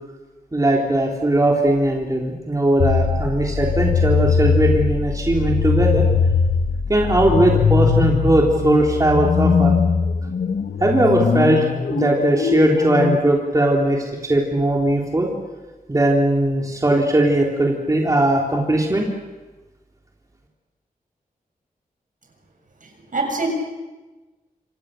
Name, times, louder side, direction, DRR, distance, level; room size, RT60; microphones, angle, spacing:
voice 1, 0.5-6.0 6.9-9.7 10.8-15.3 15.9-19.1, right 1 dB, 25° right, -1 dB, 3.8 m, -19 dB
sound 1, 2.8-13.2, left 6 dB, 75° left, 1.1 m, -20 dB
voice 2, 22.8-23.5, right 3 dB, 65° right, 3 dB, 7.5 m, -25 dB
27.5 x 27.0 x 6.8 m, 1.2 s
wide cardioid pair, 115°, 15 cm